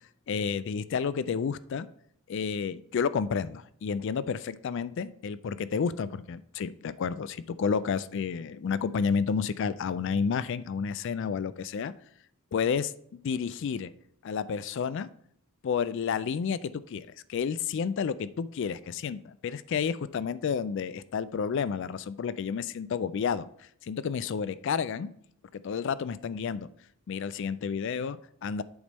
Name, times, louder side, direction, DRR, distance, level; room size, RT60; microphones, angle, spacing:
voice 1, 0.3-1.9 2.3-11.9 12.5-12.9 13.2-13.9 14.2-15.1 15.6-23.5 23.8-25.1 25.5-26.7 27.1-28.6, left 6 dB, 55° left, 16 dB, 0.3 m, -30 dB
7.9 x 3.4 x 5.3 m, 0.68 s
head